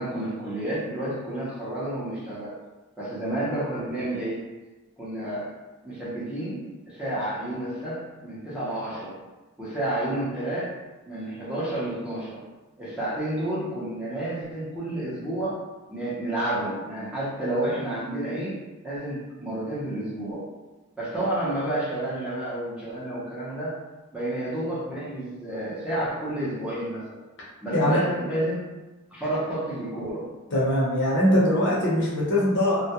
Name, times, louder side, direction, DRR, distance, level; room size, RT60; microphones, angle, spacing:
voice 1, 0.0-2.5 3.0-4.4 5.0-5.5 5.8-9.2 9.6-10.8 11.1-12.4 12.8-15.6 15.9-18.6 18.8-20.4 21.0-23.8 24.1-27.2 27.6-28.6 29.1-30.3, right 1 dB, 5° right, -10 dB, 0.6 m, -30 dB
voice 2, 27.7-28.0 30.5-32.9, left 1 dB, 55° left, -5 dB, 0.7 m, -22 dB
2.2 x 2.1 x 2.8 m, 1.2 s
head